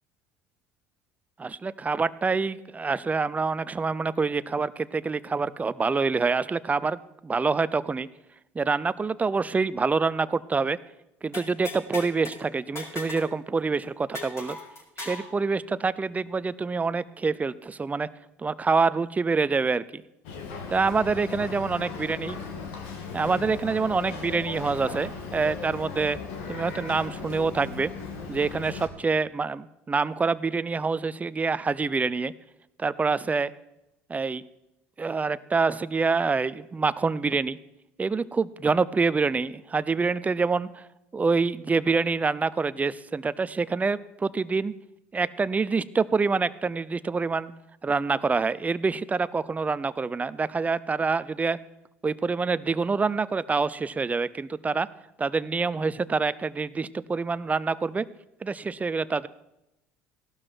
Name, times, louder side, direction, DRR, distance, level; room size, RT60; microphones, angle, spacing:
voice 1, 1.4-8.1 8.5-10.8 11.2-14.6 15.0-18.1 18.4-20.0 20.7-22.4 23.1-26.2 26.5-27.9 28.3-32.3 32.8-33.5 34.1-34.4 35.0-37.6 38.0-40.8 41.1-44.7 45.1-47.5 47.8-51.6 52.0-54.9 55.2-58.1 58.4-59.3, right 4 dB, 20° right, 17 dB, 0.7 m, -26 dB
sound 1, 11.3-12.4 12.8-13.3 13.6-13.7 14.1-15.3, left 2 dB, 35° left, 6.2 m, -37 dB
Boat Water vehicle, 20.2-28.9, left 5 dB, 70° left, 2.6 m, -37 dB
16.5 x 12.0 x 4.6 m, 0.88 s
hypercardioid pair, 70°, 7 cm